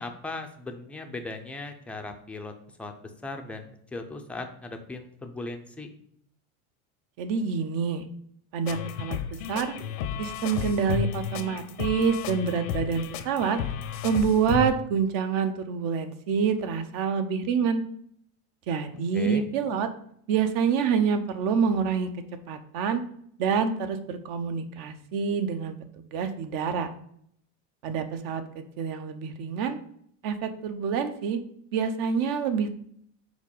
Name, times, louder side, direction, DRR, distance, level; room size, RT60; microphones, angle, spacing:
voice 1, 0.0-2.5 2.8-2.9 3.2-5.9 19.1-19.4, left 2 dB, 5° left, 4 dB, 0.4 m, -38 dB
voice 2, 7.2-8.0 8.5-9.7 10.2-13.6 14.0-17.8 18.7-19.9 20.3-22.1 22.5-23.0 23.4-25.8 26.1-26.9 27.8-29.8 30.2-31.4 31.7-32.7, right 6 dB, 55° right, 9 dB, 0.8 m, -27 dB
sound 1, 8.7-14.7, left 8 dB, 75° left, 0.8 m, -32 dB
5.1 x 4.1 x 5.2 m, 0.68 s
supercardioid pair, 135°, 40 cm